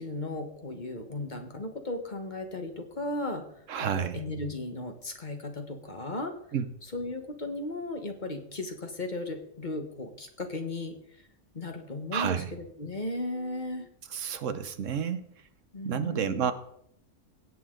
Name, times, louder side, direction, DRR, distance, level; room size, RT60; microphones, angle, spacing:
voice 1, 0.0-3.4 3.8-6.3 6.9-11.3 11.5-13.9 15.7-16.5, left 2 dB, 35° left, 5 dB, 1.4 m, -36 dB
voice 2, 3.7-4.2 6.5-6.7 12.1-12.5 14.1-15.2 15.8-16.5, right 8 dB, 75° right, 10 dB, 1.2 m, -30 dB
16.5 x 8.6 x 3.8 m, 0.74 s
omnidirectional pair, 1.3 m